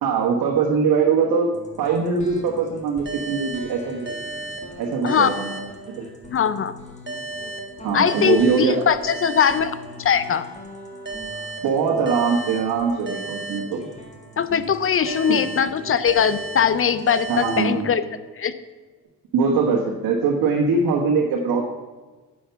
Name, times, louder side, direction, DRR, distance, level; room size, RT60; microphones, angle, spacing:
voice 1, 0.0-1.5 1.8-4.2 4.8-5.6 6.0-6.1 7.8-8.9 11.6-13.8 15.3-15.4 17.3-17.9 19.3-21.6, right 5 dB, 70° right, -1 dB, 1.4 m, -22 dB
sound 1, 1.5-17.7, left 1 dB, 20° left, 1.8 m, -43 dB
sound 2, 3.1-6.4 7.1-10.4 11.1-14.4 15.1-18.4, right 3 dB, 30° right, 1.5 m, -35 dB
voice 2, 6.3-6.7 7.9-9.7 10.0-10.4 14.4-18.0 18.4-18.5, left 7 dB, 40° left, 13 dB, 0.6 m, -20 dB
8.5 x 6.5 x 5.8 m, 1.3 s
cardioid pair, 100°, 36 cm